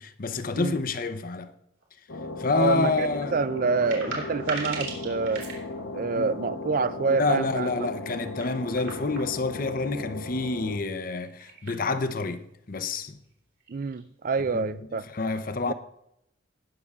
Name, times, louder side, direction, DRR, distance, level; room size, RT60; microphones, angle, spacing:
voice 1, 0.0-1.5 2.4-3.3 6.1-6.3 7.1-13.2 14.5-14.8 15.1-15.7, left 3 dB, 45° left, 0.7 m, -28 dB
sound 1, 1.8-1.9 3.3-6.0 7.9-9.7 11.1-11.8 12.1-12.2 13.2-13.3 13.6-14.0, right 4 dB, 80° right, 3.5 m, -39 dB
sound 2, 2.1-10.8, left 2 dB, 80° left, 1.1 m, -37 dB
voice 2, 2.5-5.4 5.9-7.9 13.7-15.1 15.7-15.8, right 4 dB, 45° right, 0.4 m, -27 dB
18.5 x 6.8 x 3.6 m
head